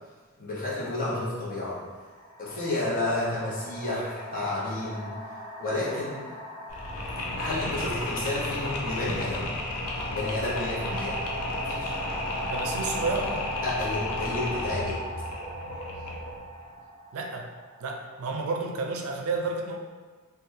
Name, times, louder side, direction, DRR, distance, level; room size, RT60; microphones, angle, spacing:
voice 1, 0.4-1.8 2.4-5.1 5.6-6.3 7.4-9.5 10.1-11.2 11.6-12.0 13.6-15.0, left 2 dB, 40° left, -7 dB, 0.8 m, -31 dB
sound 1, 1.9-18.4, equal, 15° right, 1.1 m, -39 dB
Mechanisms, 6.7-16.4, left 2 dB, 85° left, 0.5 m, -33 dB
voice 2, 12.5-13.5 17.1-17.5 17.8-19.8, right 3 dB, 70° right, 2 dB, 0.4 m, -31 dB
3.3 x 2.3 x 2.7 m, 1.4 s
head